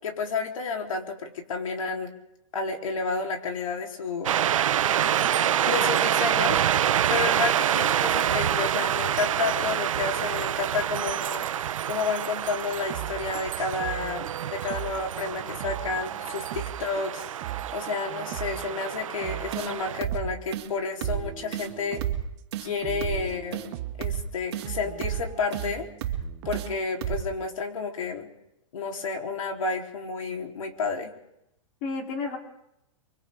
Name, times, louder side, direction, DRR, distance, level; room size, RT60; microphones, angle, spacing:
voice 1, 0.0-2.1 2.5-4.4 4.9-5.0 5.6-6.6 7.1-11.5 11.9-17.4 17.7-22.0 22.6-23.6 24.0-25.9 26.4-28.3 28.7-31.1, left 4 dB, 80° left, 2 dB, 3.8 m, -31 dB
sound 1, 4.2-20.0, right 10 dB, 80° right, 0.7 m, -27 dB
voice 2, 5.0-5.5 31.8-32.4, left 4 dB, 35° left, 1 dB, 3.7 m, -33 dB
sound 2, 12.7-18.9 19.2-20.7 21.0-22.3 22.8-24.1 24.6-26.8, right 14 dB, 30° right, 0.8 m, -38 dB
sound 3, 19.5-19.7 20.0-20.2 20.5-20.7 21.0-21.2 21.5-21.7 22.0-22.2 22.5-22.7 23.0-23.2 23.5-23.7 24.0-24.2 24.5-24.7 25.0-25.2 25.5-25.7 26.0-26.2 26.5-26.7 27.0-27.2, right 11 dB, 50° right, 2.7 m, -31 dB
30.0 x 24.0 x 3.8 m, 0.82 s
hypercardioid pair, 165°, 17 cm